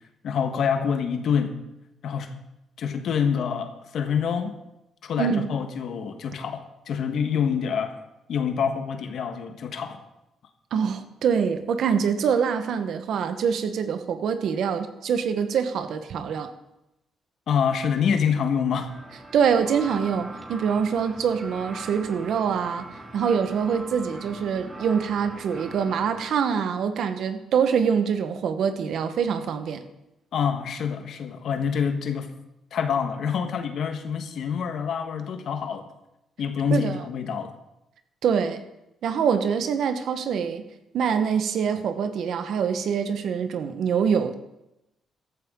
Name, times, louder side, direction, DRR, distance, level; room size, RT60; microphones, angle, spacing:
voice 1, 0.2-1.6 2.0-2.3 2.8-4.6 5.0-8.0 8.3-10.0 17.5-18.9 30.3-32.3 32.7-35.9 36.4-37.5, left 7 dB, 65° left, 7 dB, 1.5 m, -26 dB
voice 2, 10.7-16.5 19.3-22.9 23.1-29.8 36.7-37.0 38.2-38.6 39.0-40.6 40.9-44.3, right 7 dB, 70° right, 8 dB, 1.3 m, -25 dB
sound 1, 18.6-26.2, right 2 dB, 15° right, 2.7 m, -41 dB
14.5 x 13.0 x 3.8 m, 0.90 s
cardioid pair, 90°, 0 cm